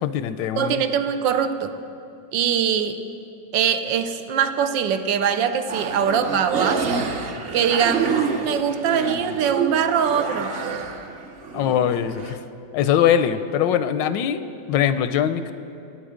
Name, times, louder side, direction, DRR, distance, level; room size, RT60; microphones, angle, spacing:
voice 1, 0.0-0.8 11.5-12.4 12.7-15.5, left 9 dB, 85° left, 12 dB, 1.3 m, -22 dB
voice 2, 0.6-1.8 2.3-3.0 3.5-7.0 7.5-10.6, right 8 dB, 85° right, 9 dB, 1.4 m, -22 dB
sound 1, 5.7-12.4, right 5 dB, 50° right, 0.7 m, -28 dB
20.0 x 9.2 x 5.0 m, 2.8 s
omnidirectional pair, 2.0 m